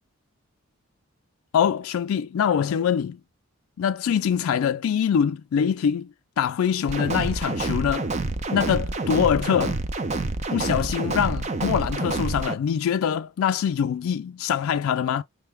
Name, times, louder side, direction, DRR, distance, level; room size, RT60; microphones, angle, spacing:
voice 1, 1.5-3.2 3.8-6.1 6.4-8.1 8.5-9.8 10.5-15.2, left 8 dB, 75° left, 0.3 m, -24 dB
sound 1, 6.9-12.5, right 2 dB, 30° right, 0.4 m, -28 dB
5.6 x 2.1 x 3.3 m
head